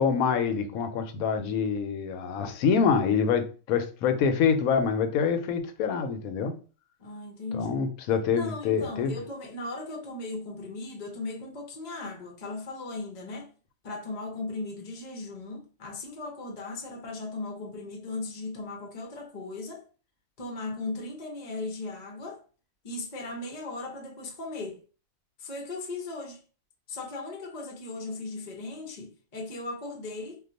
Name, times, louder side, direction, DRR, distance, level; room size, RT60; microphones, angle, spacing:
voice 1, 0.0-6.5 7.5-9.2, left 6 dB, 90° left, 1.0 m, -26 dB
voice 2, 7.0-7.8 8.3-13.5 13.8-19.8 20.4-22.4 22.8-24.8 25.4-26.4 26.9-30.4, left 2 dB, 40° left, 0.7 m, -37 dB
2.4 x 2.3 x 3.9 m
omnidirectional pair, 1.4 m